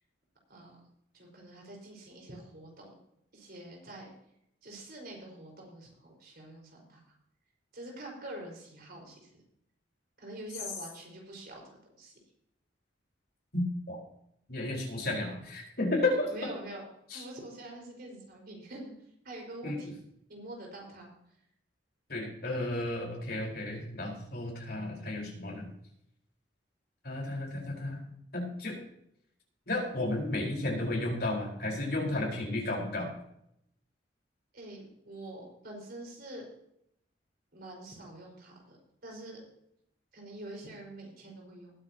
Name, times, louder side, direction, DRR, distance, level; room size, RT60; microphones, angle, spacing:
voice 1, 1.1-3.0 3.3-4.1 4.6-7.0 7.7-9.3 10.2-12.1 16.3-18.9 19.2-19.9 20.3-21.1 34.5-36.4 37.5-38.8 39.0-39.5 40.1-41.7, right 1 dB, 55° right, 0 dB, 5.3 m, -46 dB
voice 2, 13.5-14.0 14.5-16.3 17.1-17.2 19.6-19.8 22.1-25.7 27.0-28.0 28.3-28.7 29.7-33.1, left 2 dB, 55° left, -2 dB, 4.8 m, -33 dB
20.0 x 9.8 x 3.0 m, 0.75 s
head